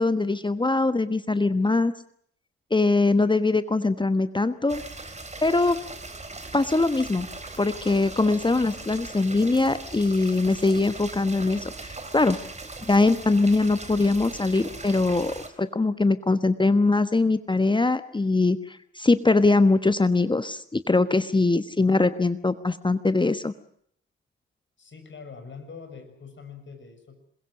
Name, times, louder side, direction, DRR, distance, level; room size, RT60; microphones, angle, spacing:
voice 1, 0.0-1.9 2.7-4.8 5.4-5.8 6.5-7.3 7.6-12.4 12.9-23.5, left 3 dB, 15° left, 12 dB, 1.2 m, -22 dB
sound 1, 4.7-15.5, right 3 dB, 20° right, 4.0 m, -40 dB
voice 2, 24.8-27.2, left 5 dB, 40° left, 7 dB, 6.6 m, -43 dB
27.5 x 22.0 x 6.3 m, 0.65 s
figure-of-eight pair, 40°, 30 cm